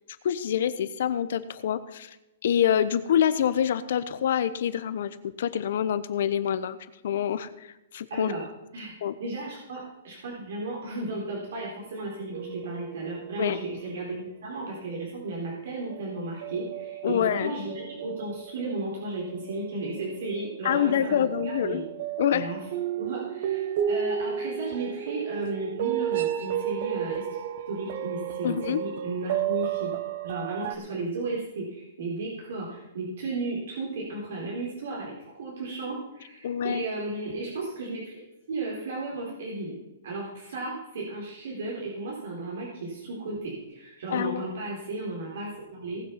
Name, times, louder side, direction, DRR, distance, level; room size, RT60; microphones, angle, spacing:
voice 1, 0.2-2.1 2.4-6.8 7.0-7.5 7.9-8.3 9.0-9.1 13.4-13.6 17.0-17.5 20.6-21.9 22.2-22.5 28.4-28.8 36.4-36.9 44.1-44.5, left 9 dB, 60° left, 13 dB, 0.9 m, -26 dB
voice 2, 8.1-8.5 8.7-8.9 9.2-21.8 22.3-22.6 23.0-27.4 27.7-29.9 30.2-38.2 38.5-39.7 40.0-46.0, right 2 dB, 65° right, -3 dB, 3.9 m, -34 dB
sound 1, 12.3-14.1 14.6-14.8 15.9-30.7, right 10 dB, 50° right, 0.7 m, -33 dB
18.5 x 6.6 x 5.8 m, 0.97 s
hypercardioid pair, 165°, 0 cm